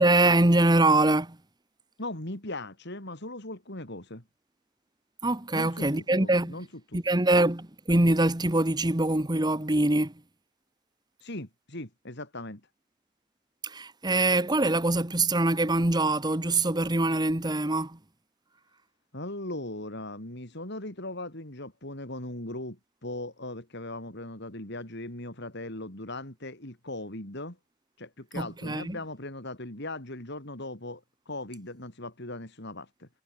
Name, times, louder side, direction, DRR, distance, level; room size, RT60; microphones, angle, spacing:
voice 1, 0.0-1.4 5.2-6.5 6.9-10.1 13.6-18.0 28.3-29.0, right 2 dB, 20° right, 1.3 m, -24 dB
voice 2, 2.0-4.2 5.5-7.2 11.2-12.6 19.1-27.6 28.0-33.1, left 1 dB, 50° left, 4.1 m, -39 dB
head